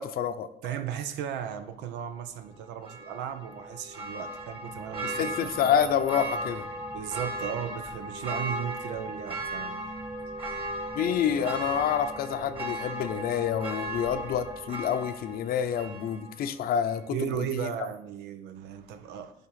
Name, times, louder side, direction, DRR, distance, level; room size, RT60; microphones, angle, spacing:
voice 1, 0.0-0.5 5.0-6.6 10.9-17.2 17.6-17.7, left 8 dB, 60° left, 11 dB, 0.7 m, -28 dB
voice 2, 0.6-5.7 6.9-9.8 17.1-19.3, right 9 dB, 90° right, 9 dB, 0.9 m, -36 dB
Church bell, 2.8-16.5 16.9-17.0, right 1 dB, 30° right, 2.0 m, -36 dB
10.5 x 3.6 x 5.8 m, 0.80 s
cardioid pair, 110°, 17 cm